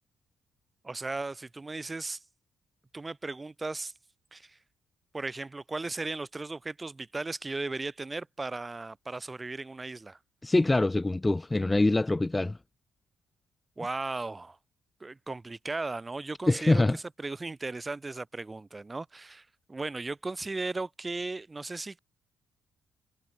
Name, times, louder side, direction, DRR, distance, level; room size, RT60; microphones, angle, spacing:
voice 1, 0.8-2.2 2.9-3.9 4.3-4.6 5.1-10.2 13.8-14.6 15.0-22.0, right 3 dB, 20° right, 6.8 m, -36 dB
voice 2, 10.4-12.6 16.5-17.0, left 2 dB, 15° left, 1.0 m, -24 dB
cardioid pair, 90°, 0 cm